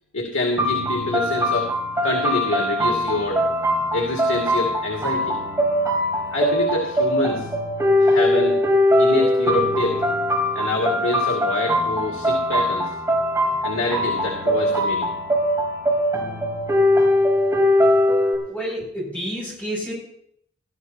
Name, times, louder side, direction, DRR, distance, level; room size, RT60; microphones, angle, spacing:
voice 1, 0.1-1.7 2.0-3.4 3.9-5.3 6.3-7.5 8.0-8.6 9.0-10.0 10.5-12.9 13.6-15.1, left 2 dB, 85° left, 0 dB, 2.3 m, -26 dB
sound 1, 0.6-18.3, left 1 dB, 15° right, 4.1 m, -21 dB
voice 2, 18.5-19.9, equal, 5° left, -7 dB, 6.1 m, -29 dB
20.0 x 13.5 x 2.9 m, 0.70 s
head